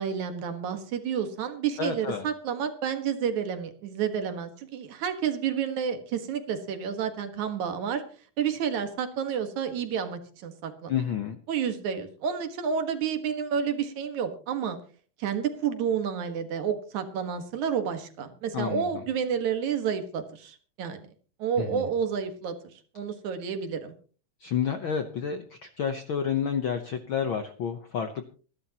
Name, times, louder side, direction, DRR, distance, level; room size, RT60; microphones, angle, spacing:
voice 1, 0.0-8.0 8.4-10.9 11.5-14.8 15.2-21.0 21.4-22.6 22.9-23.9, right 7 dB, 70° right, 7 dB, 2.9 m, -30 dB
voice 2, 1.8-2.3 10.9-11.4 18.5-19.0 21.6-21.8 24.4-28.3, left 7 dB, 70° left, 7 dB, 1.2 m, -30 dB
26.0 x 11.5 x 2.9 m, 0.39 s
omnidirectional pair, 3.5 m